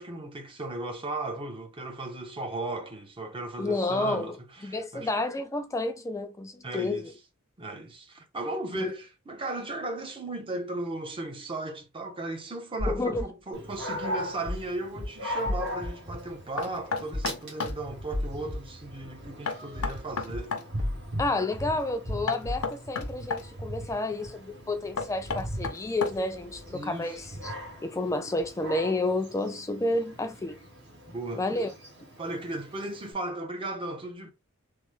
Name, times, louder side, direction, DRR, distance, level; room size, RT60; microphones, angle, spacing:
voice 1, 0.0-5.1 6.6-7.1 7.6-20.6 26.7-27.2 31.1-31.5 32.2-34.3, right 2 dB, 25° right, 0.6 m, -36 dB
voice 2, 3.6-4.4 4.6-7.1 8.7-8.9 12.9-13.3 21.2-27.5 27.8-30.6 31.3-31.7, left 2 dB, 15° left, 0.3 m, -30 dB
sound 1, 12.8-13.2 14.5-14.7 15.0-15.1 15.5-15.9 17.1-17.3 17.6-17.7 18.1-18.6 19.8-20.0 20.3-20.4 20.8-21.2 22.5-22.7 23.0-23.1, left 1 dB, 70° right, 1.3 m, -32 dB
Dog, 13.5-33.1, equal, 55° right, 1.1 m, -40 dB
Knock, 16.6-17.8 19.5-20.7 22.3-23.5 25.0-26.4, left 5 dB, 85° left, 0.6 m, -32 dB
3.2 x 2.0 x 3.2 m
head